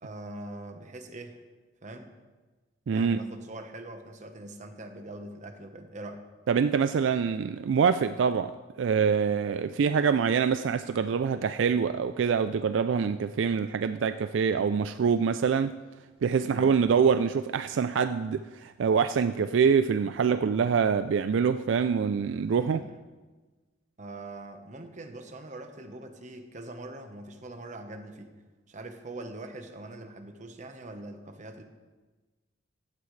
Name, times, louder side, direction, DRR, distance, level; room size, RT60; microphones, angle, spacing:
voice 1, 0.0-1.4 1.8-2.1 2.9-6.2 16.4-16.9 22.5-23.0 24.0-28.4 28.7-31.6, right 2 dB, 40° right, 6 dB, 1.1 m, -43 dB
voice 2, 2.9-3.2 6.5-8.5 8.8-15.7 16.2-22.8, right 6 dB, 70° right, 11 dB, 0.3 m, -25 dB
15.5 x 12.0 x 3.2 m, 1.3 s
head